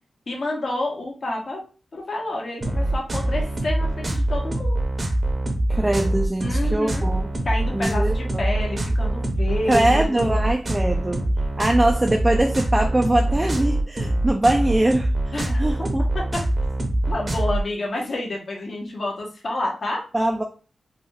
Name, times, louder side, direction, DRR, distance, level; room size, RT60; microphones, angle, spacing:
voice 1, 0.3-1.6 1.9-4.8 6.4-7.1 7.4-10.2 15.3-15.6 17.1-20.0, left 2 dB, 55° left, 0 dB, 1.0 m, -29 dB
sound 1, 2.6-17.6, right 1 dB, 35° right, 0.7 m, -24 dB
voice 2, 5.7-7.3 7.7-8.4 9.7-11.3 11.6-15.1 15.6-16.0 20.1-20.4, right 1 dB, 15° right, 3 dB, 0.3 m, -22 dB
3.4 x 2.3 x 2.6 m, 0.37 s
wide cardioid pair, 115°, 0 cm